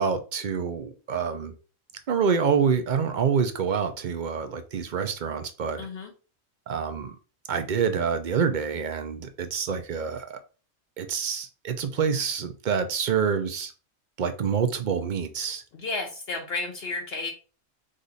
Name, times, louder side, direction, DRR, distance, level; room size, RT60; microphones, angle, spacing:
voice 1, 0.0-1.5 2.1-5.9 6.7-7.1 7.5-10.4 11.0-13.7 14.2-15.6, right 6 dB, 50° right, 0.6 m, -27 dB
voice 2, 5.8-6.1 15.7-17.3, left 3 dB, 55° left, 0.9 m, -32 dB
5.0 x 2.6 x 4.0 m
omnidirectional pair, 1.3 m